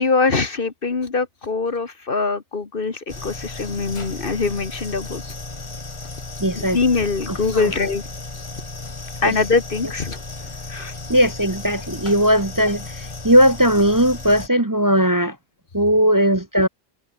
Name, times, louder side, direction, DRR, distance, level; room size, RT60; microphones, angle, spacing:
voice 1, 0.0-5.2 6.6-8.0 9.2-10.2 10.7-10.9, left 4 dB, 50° left, 1.7 m, -23 dB
sound 1, 3.1-14.5, left 3 dB, 25° left, 1.4 m, -34 dB
voice 2, 6.4-6.8 7.5-7.7 9.2-9.4 11.1-15.4 15.7-16.7, equal, 15° right, 1.2 m, -18 dB
omnidirectional pair, 1.2 m